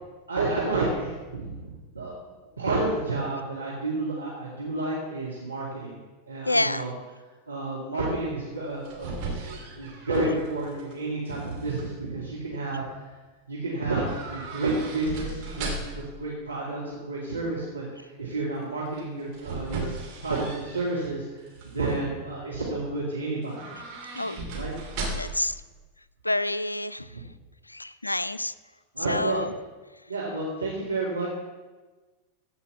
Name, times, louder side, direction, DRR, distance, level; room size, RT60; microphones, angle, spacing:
voice 1, 0.3-1.7 1.9-2.1 2.6-6.0 6.3-6.9 7.5-9.2 9.4-13.1 13.5-19.9 20.2-23.7 24.5-24.7 27.1-27.2 28.9-29.5 30.1-31.3, right 2 dB, 80° right, -6 dB, 2.2 m, -30 dB
voice 2, 6.5-6.8 24.2-24.4 25.1-25.5 26.2-27.1 27.7-28.5 29.1-29.5, left 1 dB, 85° left, 16 dB, 0.3 m, -27 dB
sound 1, 8.6-10.9 11.3-11.8 14.0-16.1 18.9-21.1 21.5-22.0 23.4-25.5 25.8-25.9, right 3 dB, 40° right, 2.9 m, -37 dB
15.0 x 5.6 x 6.9 m, 1.3 s
figure-of-eight pair, 90°, 0 cm